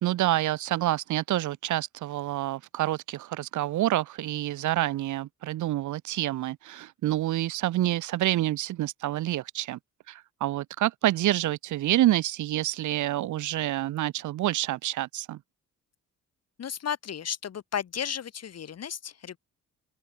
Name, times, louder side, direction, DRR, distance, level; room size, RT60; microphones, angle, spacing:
voice 1, 0.0-9.8 10.1-15.4, right 14 dB, 75° right, 1.2 m, -27 dB
voice 2, 16.6-19.4, left 8 dB, 55° left, 5.4 m, -34 dB
open air
cardioid pair, 90°, 30 cm